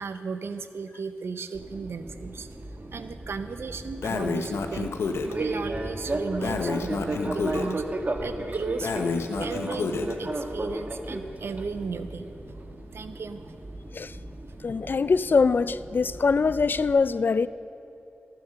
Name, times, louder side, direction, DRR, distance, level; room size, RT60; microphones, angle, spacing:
voice 1, 0.0-2.5 2.9-5.0 5.3-9.1 9.4-12.3 12.9-13.5, right 4 dB, 75° right, 0.6 m, -35 dB
Fixed-wing aircraft airplane, 1.5-16.9, right 2 dB, 40° right, 1.2 m, -36 dB
Breathing, 4.0-5.3 6.4-7.7 8.8-10.1, left 4 dB, 85° left, 0.7 m, -29 dB
voice 2, 14.6-17.5, left 4 dB, 55° left, 0.3 m, -23 dB
14.0 x 7.6 x 6.8 m
cardioid pair, 50°, 4 cm